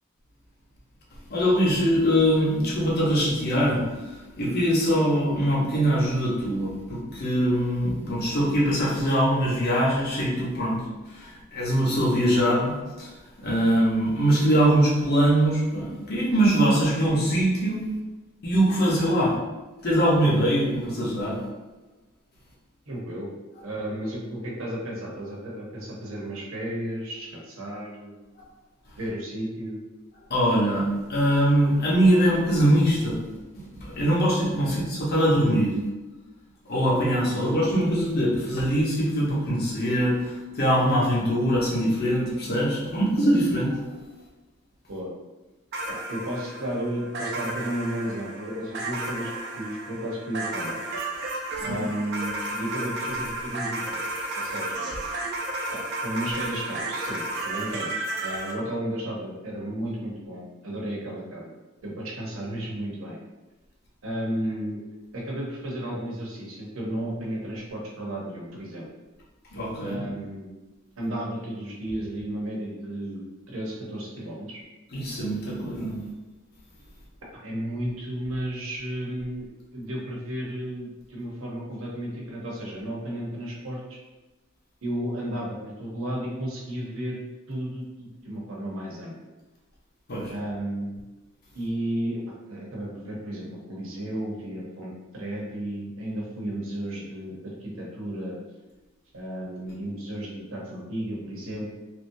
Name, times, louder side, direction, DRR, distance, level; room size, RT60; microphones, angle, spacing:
voice 1, 1.3-13.1 13.4-17.8 18.4-19.3 19.8-21.4 30.3-33.2 33.7-35.8 36.7-43.8 51.7-51.8 69.5-70.0 74.9-76.0 90.1-90.3, equal, 50° left, -5 dB, 0.9 m, -22 dB
voice 2, 22.9-23.3 23.6-28.1 29.0-29.8 34.6-34.8 44.9-45.1 45.9-50.8 51.6-54.8 55.7-61.5 61.8-63.2 64.0-64.8 65.1-68.9 69.8-70.5 71.0-74.6 77.4-79.4 79.7-84.0 84.8-89.2 90.3-91.0 91.5-98.4 99.1-101.7, right 1 dB, 75° right, -3 dB, 0.8 m, -33 dB
sound 1, 45.7-58.5, right 2 dB, 55° right, 0.5 m, -32 dB
3.2 x 2.7 x 2.6 m, 1.1 s
head